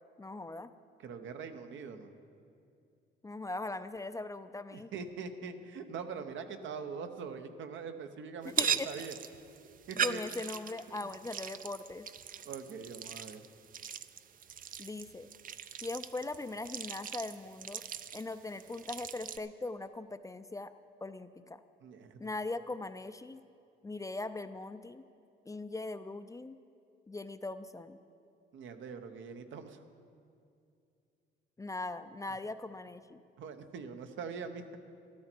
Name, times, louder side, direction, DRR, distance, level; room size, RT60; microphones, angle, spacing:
voice 1, 0.2-0.7 3.2-4.9 8.6-8.9 10.0-12.1 14.8-15.3 15.8-17.8 18.1-20.7 21.0-21.6 22.2-23.4 23.8-25.0 25.5-26.6 27.1-28.0 31.6-33.2, left 2 dB, 15° left, 11 dB, 0.4 m, -40 dB
voice 2, 1.0-2.1 4.7-9.1 9.9-10.2 11.0-11.1 12.4-13.4 21.8-22.3 28.5-29.8 33.4-34.8, right 5 dB, 75° right, 7 dB, 1.0 m, -43 dB
sound 1, 8.4-19.4, right 8 dB, 45° right, 0.5 m, -39 dB
13.0 x 13.0 x 4.5 m, 2.5 s
cardioid pair, 90°, 20 cm